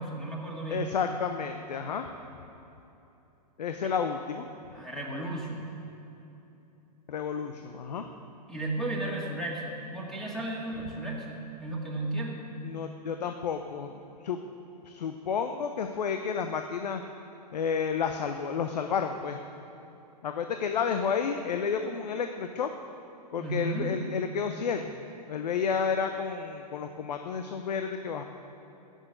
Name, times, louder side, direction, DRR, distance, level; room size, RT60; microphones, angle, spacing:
voice 1, 0.0-0.9 3.8-4.0 4.7-5.6 8.5-12.4 23.4-23.9, right 2 dB, ahead, -3 dB, 2.1 m, -34 dB
voice 2, 0.7-2.1 3.6-4.5 7.1-8.0 12.6-14.4 14.8-17.0 17.5-19.4 20.2-22.7 23.3-25.0 25.3-28.2, left 6 dB, 75° left, 6 dB, 0.8 m, -31 dB
14.5 x 6.5 x 9.0 m, 2.9 s
hypercardioid pair, 115°, 21 cm